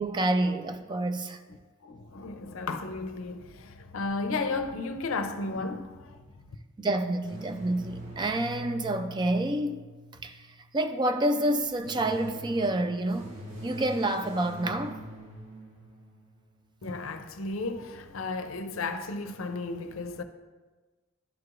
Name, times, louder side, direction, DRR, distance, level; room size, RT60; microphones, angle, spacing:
voice 1, 0.0-1.4 6.8-9.8 10.2-10.4 10.7-15.0, right 1 dB, 20° right, 0.3 m, -28 dB
voice 2, 1.8-6.6 16.8-20.2, left 3 dB, 80° left, 0.5 m, -34 dB
sound 1, 7.2-10.6 11.5-16.3, right 1 dB, 65° right, 2.0 m, -43 dB
11.5 x 4.7 x 2.5 m
head